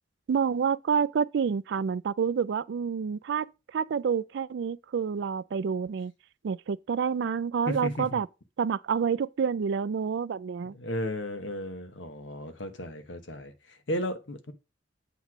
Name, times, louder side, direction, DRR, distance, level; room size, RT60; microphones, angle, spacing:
voice 1, 0.3-6.1 6.4-8.3 8.6-10.7, right 6 dB, 65° right, 0.3 m, -28 dB
voice 2, 7.7-8.2 10.7-14.5, left 1 dB, 70° left, 1.1 m, -34 dB
8.2 x 3.1 x 5.9 m
head